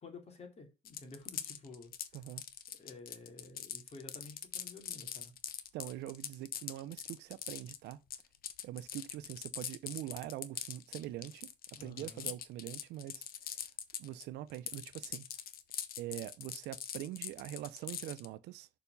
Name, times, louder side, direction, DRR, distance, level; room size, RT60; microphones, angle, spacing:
voice 1, 0.0-1.9 2.8-5.3 11.8-12.3, left 3 dB, 40° left, 3.2 m, -51 dB
sound 1, 0.8-14.2 14.5-18.3, left 9 dB, 60° left, 1.2 m, -43 dB
voice 2, 2.1-2.4 5.7-8.0 8.6-11.5 11.8-13.6 14.0-15.3 16.0-18.7, right 14 dB, 85° right, 0.8 m, -43 dB
7.0 x 5.2 x 7.1 m
cardioid pair, 110°, 17 cm